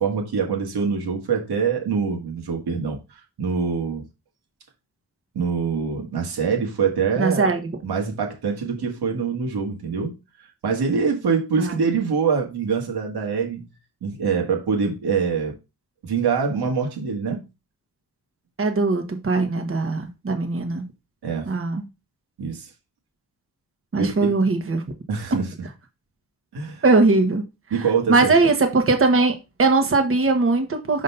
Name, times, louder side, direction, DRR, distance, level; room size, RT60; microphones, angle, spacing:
voice 1, 0.0-4.0 5.3-7.5 7.8-10.1 10.6-13.7 14.0-15.5 16.0-17.4 21.2-21.5 22.4-22.7 24.0-24.3 25.1-25.5 26.5-26.8 27.7-28.4, right 5 dB, 85° right, 1.9 m, -24 dB
voice 2, 7.2-7.8 11.6-11.8 18.6-20.8 21.5-21.8 23.9-24.8 26.8-27.4 28.1-31.0, right 3 dB, 35° right, 1.3 m, -20 dB
5.1 x 4.0 x 5.6 m
cardioid pair, 75°, 38 cm